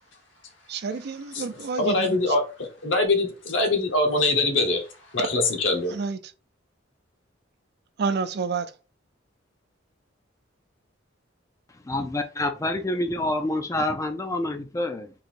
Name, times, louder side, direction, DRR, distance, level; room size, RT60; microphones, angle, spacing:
voice 1, 0.7-2.2 5.9-6.2 8.0-8.7, right 4 dB, 60° right, 0.5 m, -29 dB
voice 2, 1.8-4.9 5.1-6.0, left 2 dB, 70° left, 1.2 m, -23 dB
voice 3, 11.8-15.1, left 1 dB, 15° left, 0.4 m, -27 dB
3.9 x 2.7 x 4.4 m
head